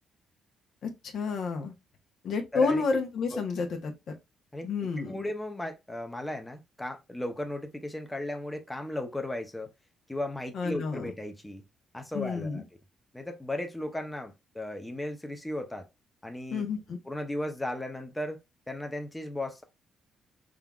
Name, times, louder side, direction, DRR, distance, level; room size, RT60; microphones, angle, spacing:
voice 1, 0.8-1.7 2.2-3.9 4.6-5.2 10.5-11.1 12.1-12.6 16.5-17.0, left 4 dB, 65° left, 1.0 m, -30 dB
voice 2, 2.5-2.8 3.3-3.4 4.5-9.7 10.1-11.6 11.9-12.6 13.1-15.8 16.2-16.6 17.1-18.4 18.7-19.6, left 1 dB, 10° left, 0.7 m, -36 dB
3.7 x 3.5 x 2.3 m
cardioid pair, 90°, 0 cm